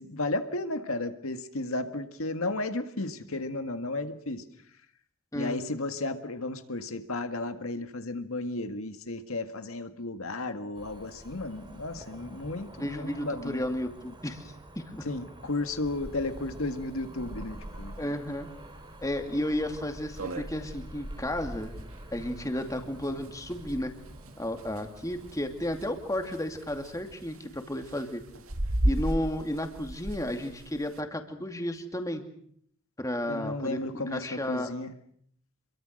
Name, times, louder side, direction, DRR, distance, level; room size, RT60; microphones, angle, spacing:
voice 1, 0.0-4.4 5.3-13.6 15.0-18.0 33.3-35.0, left 2 dB, 75° left, 8 dB, 1.8 m, -33 dB
Cricket / Motor vehicle (road), 10.7-27.1, right 1 dB, 25° right, 4.6 m, -46 dB
voice 2, 12.8-15.1 18.0-18.5 19.0-21.7 22.1-23.9 24.4-28.2 28.8-32.2 33.0-34.7, left 1 dB, 15° left, 5 dB, 2.4 m, -33 dB
sound 1, 16.0-16.1 16.3-16.4 16.8-16.9 17.4-17.7 18.2-18.3 18.8-18.9 19.2-19.3 19.7-19.8 20.0-31.0, right 1 dB, 75° right, 2.1 m, -35 dB
27.5 x 23.0 x 6.5 m, 0.65 s
head